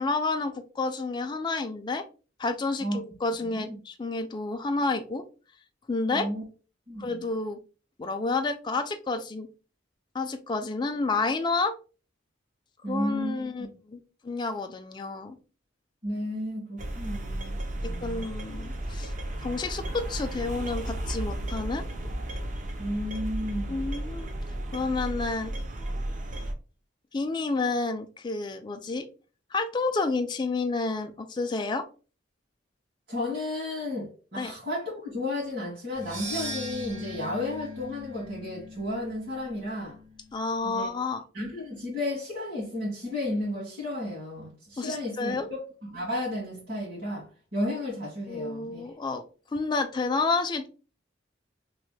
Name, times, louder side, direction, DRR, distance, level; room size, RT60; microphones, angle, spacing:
voice 1, 0.0-2.0 2.4-5.2 5.9-6.3 7.0-7.6 8.0-9.5 10.1-11.7 12.9-15.4 17.8-19.1 19.4-21.8 23.7-24.3 24.7-25.5 27.1-29.1 29.5-31.9 34.4-34.5 40.3-41.2 44.8-45.5 48.3-49.2 49.5-50.7, left 3 dB, 25° left, 0.3 m, -30 dB
voice 2, 3.4-3.8 6.1-6.4 6.9-7.2 12.8-13.7 16.0-18.3 22.8-23.9 33.1-40.0 40.6-40.9 41.3-48.8, left 1 dB, 55° right, 1.5 m, -33 dB
sound 1, 16.8-26.5, right 1 dB, 40° right, 0.5 m, -34 dB
sound 2, 35.9-40.3, left 1 dB, 80° right, 1.5 m, -39 dB
3.1 x 2.1 x 3.2 m
head